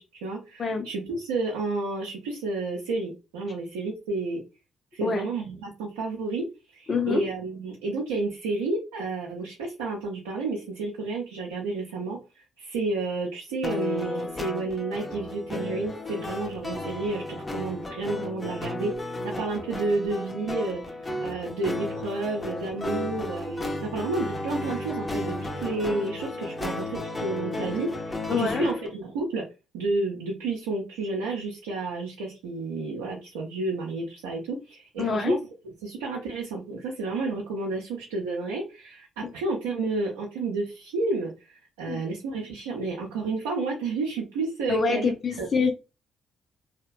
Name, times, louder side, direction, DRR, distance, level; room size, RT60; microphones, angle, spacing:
voice 1, 0.0-4.4 4.9-6.5 6.7-29.4 29.7-35.4 35.8-45.5, right 3 dB, 85° right, -2 dB, 0.5 m, -31 dB
voice 2, 6.9-7.3 28.3-28.7 35.0-35.4 39.2-39.3 41.9-42.0 44.7-45.7, left 4 dB, 45° left, 4 dB, 0.5 m, -25 dB
sound 1, 13.6-28.9, left 2 dB, 25° left, 0.9 m, -34 dB
2.7 x 2.1 x 2.5 m, 0.28 s
hypercardioid pair, 50°, 0 cm